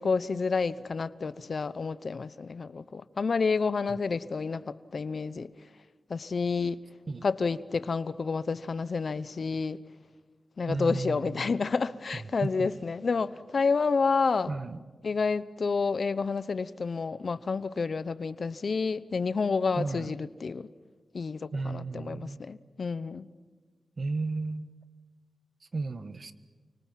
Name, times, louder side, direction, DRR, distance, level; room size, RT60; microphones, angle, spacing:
voice 1, 0.0-5.5 6.1-6.8 7.2-9.8 10.6-14.5 15.0-20.7 21.1-23.3, left 4 dB, 65° left, 16 dB, 0.9 m, -29 dB
voice 2, 10.7-11.7 12.1-12.7 14.5-14.8 19.7-20.1 21.5-22.4 24.0-24.7 25.6-26.3, right 3 dB, 55° right, 12 dB, 1.3 m, -34 dB
29.0 x 25.0 x 7.5 m, 1.4 s
cardioid pair, 70°, 0 cm